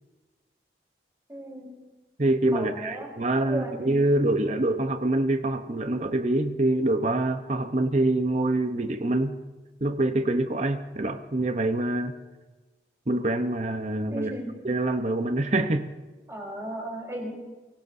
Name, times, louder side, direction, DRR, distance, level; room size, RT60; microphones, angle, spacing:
voice 1, 1.3-1.8 2.5-3.1 3.5-3.8 14.1-14.5 16.3-17.3, right 1 dB, 15° right, -1 dB, 3.8 m, -35 dB
voice 2, 2.2-9.4 9.8-12.2 13.1-14.3 14.6-15.9, right 2 dB, 40° right, 8 dB, 0.8 m, -25 dB
24.5 x 18.0 x 2.7 m, 1.2 s
head